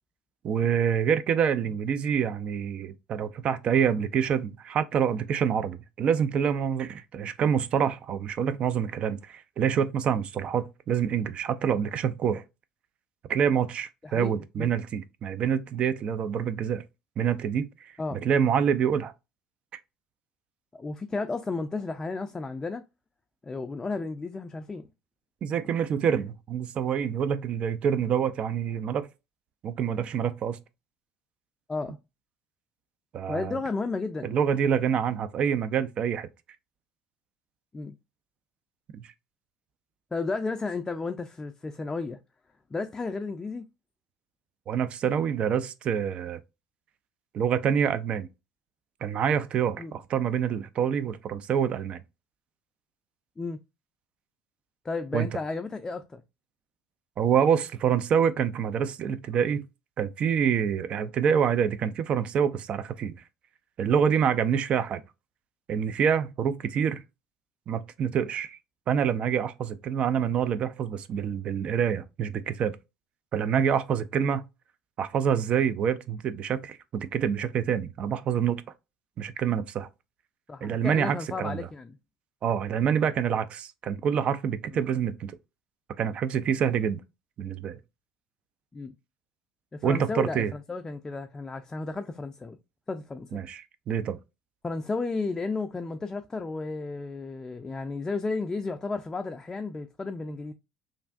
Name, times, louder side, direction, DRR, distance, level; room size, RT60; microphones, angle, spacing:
voice 1, 0.4-12.4 13.3-16.8 17.2-19.1 25.4-29.1 29.6-30.6 33.1-33.6 34.2-36.3 38.9-39.1 44.7-46.4 47.3-48.3 49.0-52.0 55.1-55.3 57.2-59.6 60.0-63.1 63.8-65.0 65.7-67.0 67.7-68.6 68.9-72.7 73.3-74.5 75.0-78.6 79.2-79.9 80.6-81.7 82.4-85.4 86.0-87.0 87.4-87.8 89.8-90.5 93.3-94.2, right 8 dB, 45° right, 0.4 m, -26 dB
voice 2, 14.0-14.7 18.0-18.2 20.7-22.8 23.4-24.9 31.7-32.0 33.3-34.3 37.7-37.9 40.1-42.2 42.7-43.7 49.8-49.9 53.4-53.6 54.8-56.2 80.5-82.0 88.7-88.9 89.7-92.6 92.9-93.4 94.6-100.5, left 3 dB, 20° left, 0.4 m, -33 dB
3.2 x 2.4 x 2.4 m
hypercardioid pair, 70°, 3 cm